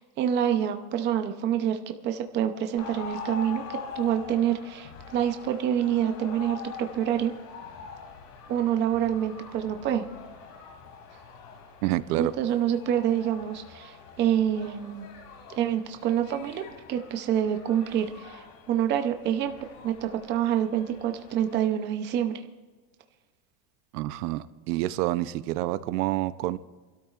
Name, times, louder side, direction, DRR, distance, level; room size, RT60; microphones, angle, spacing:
voice 1, 0.0-1.8 2.0-7.3 8.5-10.0 12.2-15.1 15.6-16.6 16.9-19.5 19.8-22.4, right 10 dB, 25° right, 6 dB, 0.6 m, -27 dB
sound 1, 2.8-21.7, left 5 dB, 65° left, 2.8 m, -44 dB
voice 2, 11.8-12.3 23.9-26.6, right 16 dB, 75° right, 14 dB, 0.8 m, -28 dB
27.0 x 13.0 x 2.5 m, 1.3 s
supercardioid pair, 165°, 48 cm